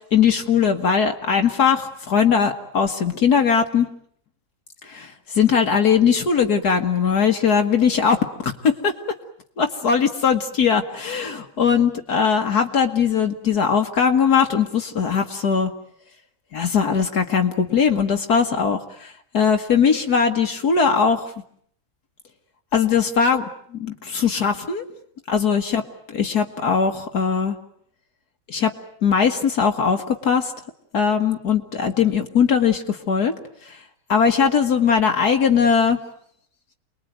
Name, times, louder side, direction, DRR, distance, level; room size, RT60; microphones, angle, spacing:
voice 1, 0.1-3.9 4.8-8.2 8.4-8.9 9.6-15.7 16.5-21.2 22.7-24.9 25.3-27.6 28.5-28.7 29.0-30.5 30.9-33.3 33.7-33.8 34.1-36.0, left 6 dB, 65° left, 5 dB, 2.1 m, -20 dB
29.0 x 21.0 x 9.2 m, 0.66 s
omnidirectional pair, 1.8 m